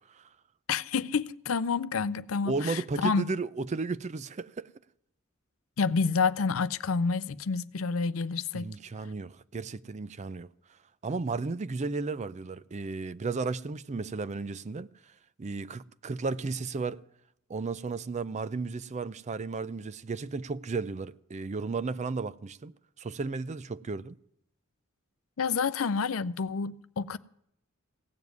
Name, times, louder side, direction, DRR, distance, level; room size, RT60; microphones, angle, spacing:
voice 1, 0.7-3.2 5.8-8.7 25.4-27.2, left 5 dB, 70° left, 0.5 m, -29 dB
voice 2, 2.5-4.7 8.5-10.5 11.0-14.9 15.4-17.0 17.5-24.2, right 4 dB, 35° right, 0.4 m, -34 dB
16.5 x 7.2 x 9.4 m
head